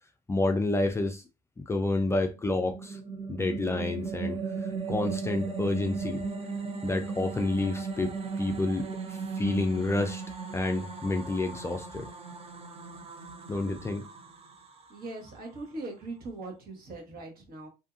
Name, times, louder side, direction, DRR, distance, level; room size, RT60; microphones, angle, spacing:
voice 1, 0.3-1.2 1.6-3.0 3.3-4.4 4.9-6.2 6.8-10.2 10.5-12.1 13.5-14.1, left 2 dB, 15° left, 0.3 m, -29 dB
sound 1, 2.4-15.6, right 4 dB, 35° right, 0.6 m, -37 dB
voice 2, 14.9-17.7, right 2 dB, 60° right, 1.2 m, -40 dB
2.7 x 2.6 x 2.4 m
cardioid pair, 110°, 17 cm